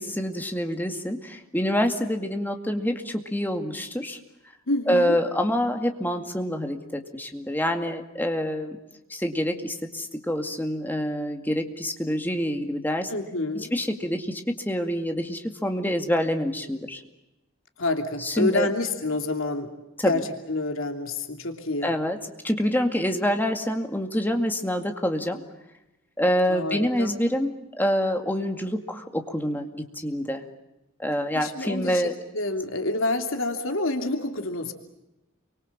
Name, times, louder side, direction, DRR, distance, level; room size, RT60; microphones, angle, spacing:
voice 1, 0.0-4.2 4.9-8.8 9.1-13.1 13.5-17.0 18.2-18.7 20.0-20.2 21.8-22.2 22.4-25.4 26.2-30.4 31.0-32.1, equal, 10° left, 5 dB, 2.2 m, -26 dB
voice 2, 4.7-5.2 13.1-13.7 17.8-19.7 20.0-21.9 26.5-27.1 31.3-34.7, left 2 dB, 70° left, 5 dB, 2.8 m, -28 dB
29.5 x 24.5 x 7.3 m, 0.95 s
head